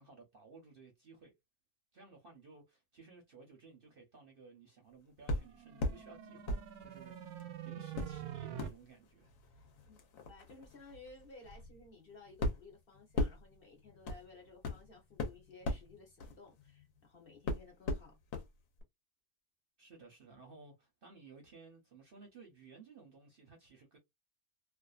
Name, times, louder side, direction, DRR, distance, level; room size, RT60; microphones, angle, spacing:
voice 1, 0.0-1.3 1.9-9.7 19.8-24.0, right 4 dB, 50° right, 0.7 m, -57 dB
sound 1, 5.3-6.0 6.5-7.4 7.9-17.0 17.5-18.5 18.8-18.9, left 2 dB, 70° left, 1.1 m, -39 dB
sound 2, 5.3-8.7, right 10 dB, 85° right, 1.1 m, -46 dB
voice 2, 10.3-18.2, left 3 dB, 50° left, 0.9 m, -56 dB
2.5 x 2.4 x 2.3 m
omnidirectional pair, 1.5 m